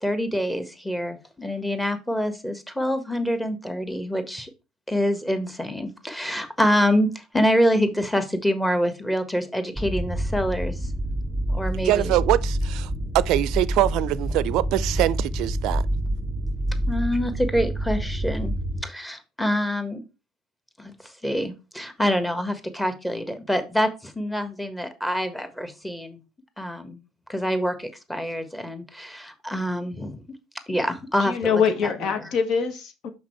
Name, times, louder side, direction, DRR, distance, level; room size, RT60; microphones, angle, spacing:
voice 1, 0.0-4.5 4.9-10.9 11.5-12.1 16.9-18.5 18.8-20.0 20.8-26.2 26.6-27.0 27.3-30.2 30.7-31.6 32.2-32.3, equal, 5° left, 1.5 m, -26 dB
sound 1, 9.8-18.8, right 1 dB, 10° right, 1.7 m, -27 dB
voice 2, 11.8-15.8, right 15 dB, 60° right, 0.4 m, -23 dB
voice 3, 31.2-33.1, left 6 dB, 55° left, 1.6 m, -24 dB
5.9 x 5.4 x 4.6 m
hypercardioid pair, 65°, 0 cm